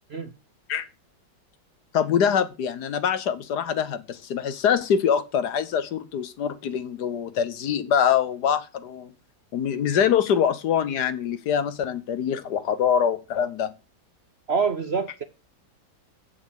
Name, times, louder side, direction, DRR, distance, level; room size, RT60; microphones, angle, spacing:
voice 1, 1.9-9.1 9.5-13.7, left 8 dB, 65° left, 1.4 m, -24 dB
voice 2, 14.5-15.2, right 5 dB, 50° right, 0.8 m, -25 dB
8.5 x 7.1 x 7.0 m
omnidirectional pair, 2.0 m